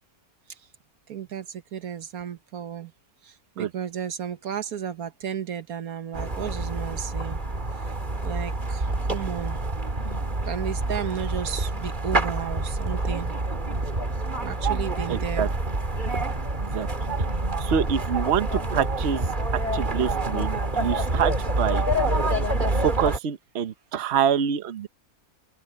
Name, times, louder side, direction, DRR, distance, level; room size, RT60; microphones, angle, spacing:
voice 1, 1.1-2.9 3.2-7.4 7.8-7.9 8.2-9.6 10.4-13.4 14.4-15.5, right 9 dB, 80° right, 1.6 m, -33 dB
sound 1, 6.1-23.2, right 2 dB, 35° right, 2.2 m, -27 dB
voice 2, 15.1-15.5 16.6-16.9 17.6-19.3 19.5-21.8 22.8-24.9, right 8 dB, 50° right, 1.1 m, -26 dB
open air
omnidirectional pair, 1.5 m